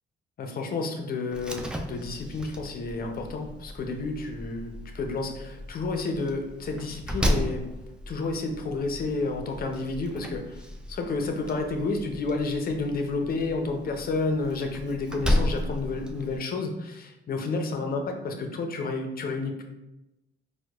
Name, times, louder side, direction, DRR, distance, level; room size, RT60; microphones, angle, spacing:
voice 1, 0.4-7.7 8.1-10.6 10.9-19.6, left 3 dB, 50° left, 4 dB, 0.6 m, -30 dB
Slam, 1.3-16.4, equal, 5° right, 0.4 m, -34 dB
4.5 x 2.2 x 2.3 m, 0.97 s
cardioid pair, 90°, 20 cm